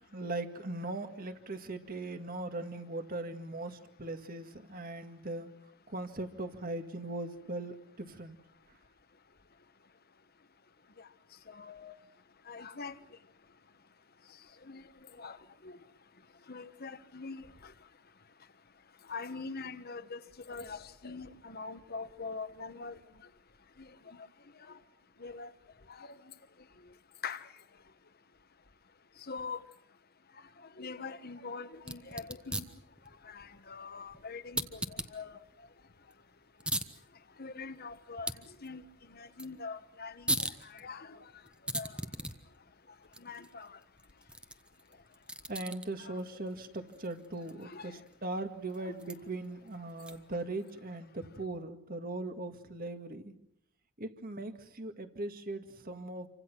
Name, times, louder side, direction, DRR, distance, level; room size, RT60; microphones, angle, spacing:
voice 1, 0.1-5.5 5.9-8.4 45.5-53.3 54.0-56.3, right 2 dB, 40° right, 1.9 m, -39 dB
voice 2, 11.6-11.9 12.5-12.9 14.7-14.8 15.2-15.4 15.6-15.7 16.5-17.5 19.1-20.2 20.5-20.8 21.0-23.0 25.2-25.5 27.2-27.4 29.3-29.6 30.8-32.6 33.3-34.8 35.1-35.3 37.4-38.3 38.6-38.8 39.1-40.3 40.7-41.1 41.7-41.9 43.2-43.7 47.7-48.0 48.8-49.1, left 4 dB, 45° left, 1.3 m, -42 dB
sound 1, 31.8-50.4, right 1 dB, 5° right, 1.1 m, -42 dB
28.0 x 25.0 x 6.1 m
head